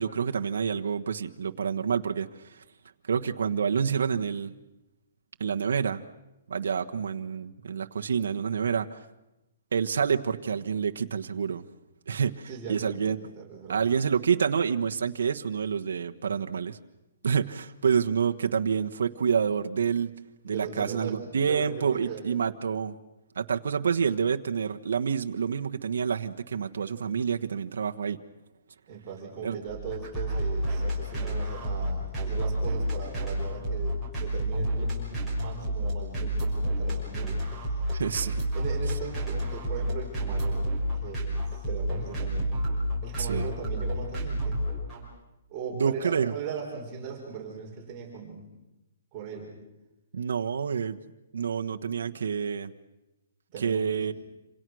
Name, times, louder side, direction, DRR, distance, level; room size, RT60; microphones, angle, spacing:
voice 1, 0.0-2.6 3.1-4.5 5.4-6.0 6.5-9.0 9.7-11.7 12.1-13.3 13.7-16.8 17.2-20.1 20.5-23.0 23.3-28.2 29.4-29.6 37.9-38.3 43.2-43.5 45.7-46.3 50.1-51.0 51.3-52.7 53.6-54.1, right 6 dB, 85° right, 5 dB, 1.3 m, -28 dB
voice 2, 12.5-13.8 20.5-22.2 28.9-37.8 38.5-40.7 40.9-42.6 43.0-44.7 45.5-48.5 49.1-49.6 53.5-54.1, right 6 dB, 20° right, -2 dB, 4.8 m, -39 dB
sound 1, 29.7-45.0, equal, ahead, 6.1 m, -30 dB
27.5 x 27.0 x 6.3 m, 0.95 s
hypercardioid pair, 170°, 0 cm